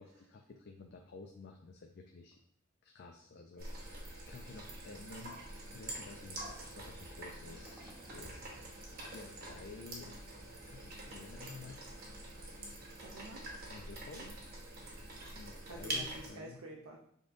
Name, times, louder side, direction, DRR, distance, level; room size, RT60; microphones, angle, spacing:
voice 1, 0.0-2.4 2.8-5.4 5.7-8.4 9.1-10.1 10.6-11.8 13.7-14.6 15.4-16.6, left 4 dB, 50° left, 2 dB, 0.4 m, -52 dB
sound 1, 3.6-16.3, right 1 dB, 45° right, 1.1 m, -46 dB
sound 2, 7.4-12.7, equal, 5° right, 1.0 m, -65 dB
voice 2, 12.9-13.4 14.2-14.3 15.7-17.0, right 1 dB, 75° right, -1 dB, 0.6 m, -49 dB
5.2 x 3.8 x 2.5 m, 0.67 s
head